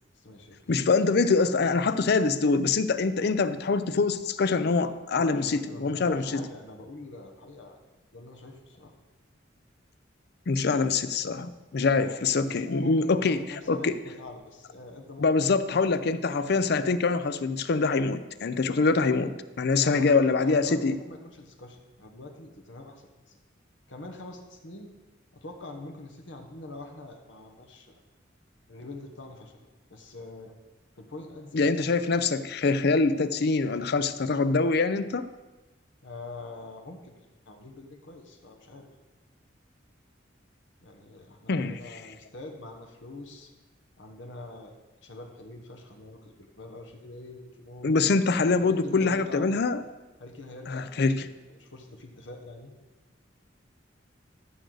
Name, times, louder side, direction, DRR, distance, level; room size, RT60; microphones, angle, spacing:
voice 1, 0.1-0.7 5.2-7.8 8.1-8.9 11.9-15.5 19.8-23.3 23.9-24.9 25.3-28.0 28.7-30.5 31.0-31.9 32.6-32.7 36.0-38.9 40.8-43.5 44.0-44.7 45.0-47.9 48.6-49.5 50.2-51.1 51.5-52.7, left 2 dB, 80° left, 3 dB, 1.2 m, -44 dB
voice 2, 0.7-6.4 10.5-14.0 15.2-21.0 31.5-35.3 41.5-41.8 47.8-49.8 50.7-51.2, left 4 dB, 60° left, 13 dB, 0.5 m, -24 dB
14.0 x 6.4 x 3.9 m, 1.2 s
head